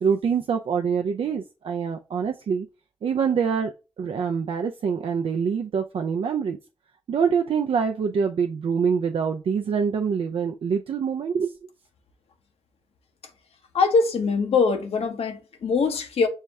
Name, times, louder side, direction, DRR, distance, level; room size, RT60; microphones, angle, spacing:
voice 1, 0.0-2.7 3.0-6.6 7.1-11.5, right 6 dB, 75° right, 0.4 m, -25 dB
voice 2, 13.7-16.3, left 4 dB, 85° left, 0.7 m, -22 dB
5.5 x 2.1 x 3.4 m
cardioid pair, 40°, 10 cm